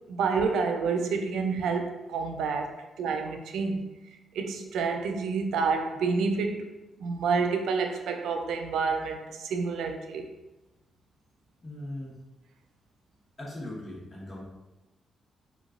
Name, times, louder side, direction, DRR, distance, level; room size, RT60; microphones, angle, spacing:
voice 1, 0.1-3.9 4.3-6.7 7.0-10.3, right 5 dB, 80° right, 5 dB, 0.3 m, -29 dB
voice 2, 11.6-12.2 13.4-14.4, left 1 dB, 40° left, -4 dB, 1.0 m, -39 dB
3.0 x 2.3 x 2.5 m, 1.0 s
supercardioid pair, 55°, 0 cm